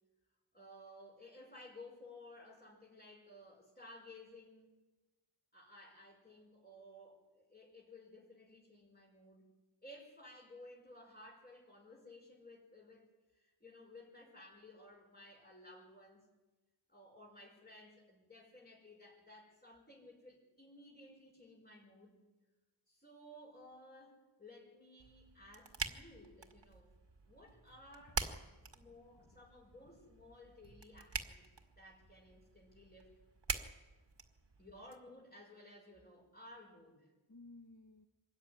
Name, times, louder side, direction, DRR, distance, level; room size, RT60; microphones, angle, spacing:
voice 1, 0.5-4.7 5.5-9.5 9.8-16.3 16.9-22.2 22.9-26.9 27.3-28.2 28.7-31.4 31.8-33.2 34.6-37.1, left 1 dB, 20° left, -3 dB, 5.8 m, -57 dB
sound 1, 25.0-35.0, right 4 dB, 60° right, 1.9 m, -46 dB
voice 2, 28.0-29.4 30.0-30.1 37.3-38.1, left 2 dB, 40° left, 4 dB, 1.7 m, -60 dB
25.5 x 14.0 x 9.9 m, 1.2 s
wide cardioid pair, 55°, 48 cm